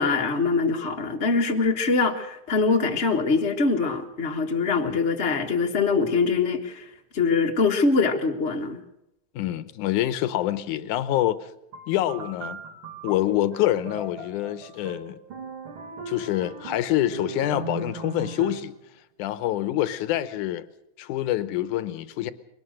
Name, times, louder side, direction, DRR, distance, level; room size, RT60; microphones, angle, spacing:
voice 1, 0.0-8.8, left 4 dB, 40° left, 1.0 m, -23 dB
voice 2, 9.4-11.4 11.9-12.6 13.0-15.2 16.1-18.7 19.2-20.7 21.0-22.3, left 13 dB, 80° left, 2.4 m, -26 dB
sound 1, 11.7-18.8, right 3 dB, 45° right, 2.9 m, -38 dB
22.0 x 19.0 x 6.4 m
omnidirectional pair, 3.5 m